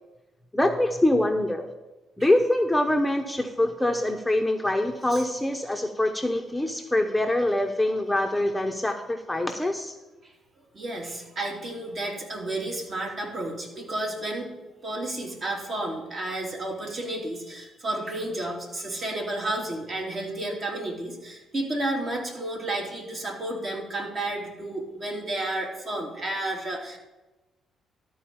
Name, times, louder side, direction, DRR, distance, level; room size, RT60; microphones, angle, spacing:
voice 1, 0.5-1.7 2.2-9.9, left 1 dB, 5° left, 4 dB, 0.8 m, -24 dB
voice 2, 10.7-14.5 14.8-27.0, right 1 dB, 45° right, -1 dB, 2.9 m, -32 dB
12.5 x 4.6 x 7.0 m, 1.1 s
cardioid pair, 90°, 0 cm